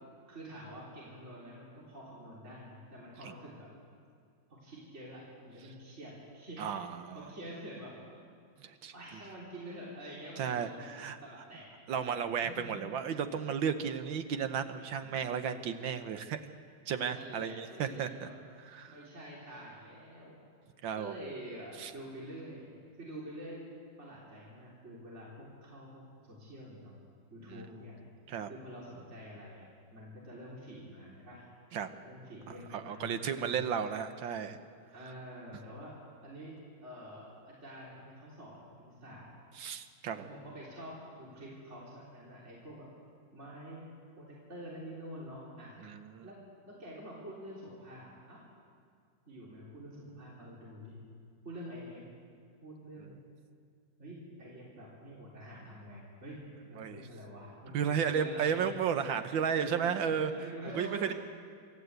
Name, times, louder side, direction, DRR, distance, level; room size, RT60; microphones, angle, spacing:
voice 1, 0.3-3.7 4.5-6.7 7.1-7.9 8.9-13.4 15.0-15.3 17.1-18.4 18.9-20.4 20.9-22.7 23.0-23.6 24.0-26.9 27.3-28.0 28.5-29.7 29.9-31.4 32.0-33.7 34.9-35.9 36.2-36.5 36.8-39.3 40.2-42.9 43.3-43.9 44.2-45.8 46.2-46.4 46.6-48.4 49.3-51.0 51.4-52.0 52.6-53.2 54.0-56.4 56.7-58.7 59.1-61.1, equal, 35° right, -5 dB, 3.7 m, -47 dB
voice 2, 6.6-7.2 8.6-8.9 10.4-11.2 11.9-16.4 16.9-18.3 18.7-19.0 20.8-21.2 21.8-21.9 27.5-27.7 28.3-28.5 31.7-31.9 32.5-34.6 39.6-40.3 45.8-46.3 56.8-57.0 57.7-60.3 60.8-61.1, right 7 dB, 70° right, 9 dB, 1.7 m, -33 dB
26.0 x 13.5 x 8.1 m, 2.3 s
omnidirectional pair, 2.2 m